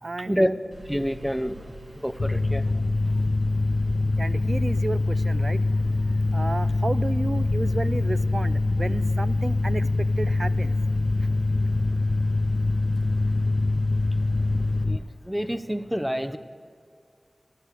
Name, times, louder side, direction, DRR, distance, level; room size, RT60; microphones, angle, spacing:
voice 1, 0.0-0.5 4.2-5.6 6.3-10.7, right 3 dB, 70° right, 16 dB, 0.4 m, -32 dB
sound 1, 0.7-14.8, right 1 dB, 90° right, 2.0 m, -46 dB
voice 2, 0.9-1.6 2.0-2.6 14.8-16.4, equal, 10° right, 11 dB, 0.8 m, -27 dB
Mechanical fan, 2.2-15.0, left 2 dB, 80° left, 0.6 m, -24 dB
14.0 x 12.5 x 8.2 m, 2.3 s
wide cardioid pair, 40°, 0 cm